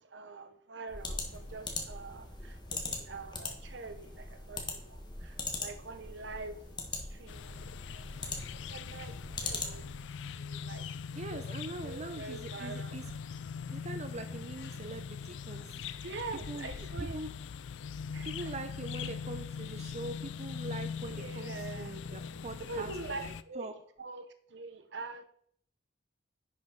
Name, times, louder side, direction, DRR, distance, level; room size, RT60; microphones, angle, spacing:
voice 1, 0.0-6.6 6.9-7.6 7.9-9.2 9.4-9.9 10.3-10.9 11.1-11.5 11.8-13.0 16.0-17.2 18.1-18.6 21.1-22.0 22.7-25.2, right 3 dB, 70° right, 9 dB, 0.9 m, -45 dB
sound 1, 0.9-10.0, left 3 dB, 25° left, 1.4 m, -41 dB
sound 2, 7.3-23.4, left 6 dB, 70° left, 0.4 m, -41 dB
voice 2, 11.1-13.0 13.7-15.8 16.5-16.7 17.0-17.3 18.2-23.7, right 2 dB, 40° right, 7 dB, 0.6 m, -42 dB
10.5 x 5.4 x 3.8 m, 0.62 s
head